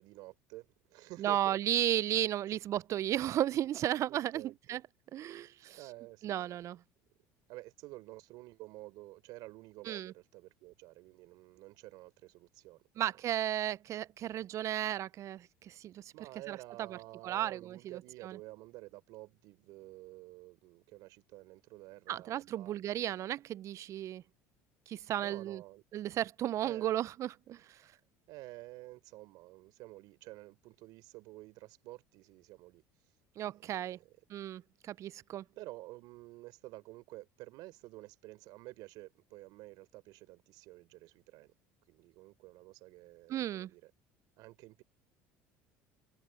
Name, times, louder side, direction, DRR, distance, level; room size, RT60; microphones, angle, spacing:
voice 1, 0.0-1.6 2.5-2.6 4.1-4.8 5.8-6.8 7.5-13.0 16.1-23.4 25.2-25.8 26.6-27.0 28.3-32.8 33.4-34.1 35.6-41.5 41.9-43.9 44.4-44.8, right 19 dB, 70° right, 4.6 m, -51 dB
voice 2, 1.2-4.4 4.7-4.8 5.1-5.8 6.2-6.8 9.9-10.1 13.0-16.1 16.5-16.9 17.2-18.4 22.1-24.2 24.9-25.6 25.9-27.8 33.4-34.0 34.3-35.4 43.3-43.7, right 12 dB, 45° right, 0.4 m, -34 dB
open air
supercardioid pair, 85°, 7 cm